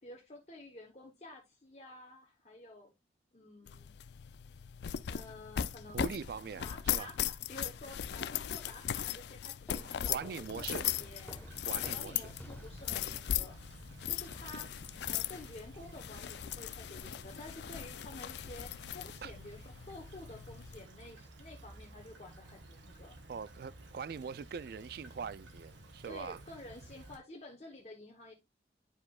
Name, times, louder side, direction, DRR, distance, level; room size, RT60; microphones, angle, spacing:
voice 1, 0.0-2.9 3.3-3.9 5.1-6.2 6.6-23.2 26.0-28.3, left 2 dB, 35° left, 1.0 m, -51 dB
sound 1, 3.7-20.8, left 10 dB, 65° left, 0.4 m, -39 dB
voice 2, 5.9-7.1 9.8-10.9 11.6-12.3 19.2-19.3 23.3-26.4, right 6 dB, 55° right, 0.3 m, -42 dB
Walk footsteps, 9.7-13.0, left 1 dB, 10° left, 1.0 m, -52 dB
Stream / Trickle dribble, 10.4-27.2, right 1 dB, 85° right, 1.5 m, -54 dB
10.5 x 4.9 x 2.3 m
head